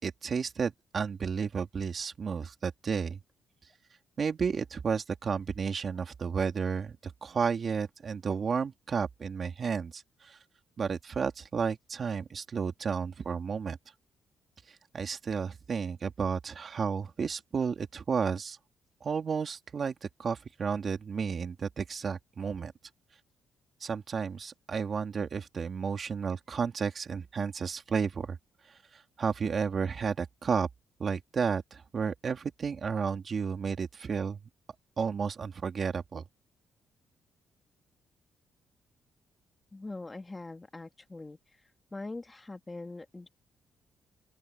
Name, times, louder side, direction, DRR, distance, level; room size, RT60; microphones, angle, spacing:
voice 1, 0.0-3.2 4.2-10.4 10.8-13.8 14.7-18.6 19.0-22.7 23.8-28.4 28.7-30.7 31.0-34.4 35.0-36.2, right 6 dB, 45° right, 2.7 m, -32 dB
voice 2, 39.7-41.4 41.9-43.3, left 2 dB, 20° left, 2.6 m, -42 dB
open air
cardioid pair, 90°, 0 cm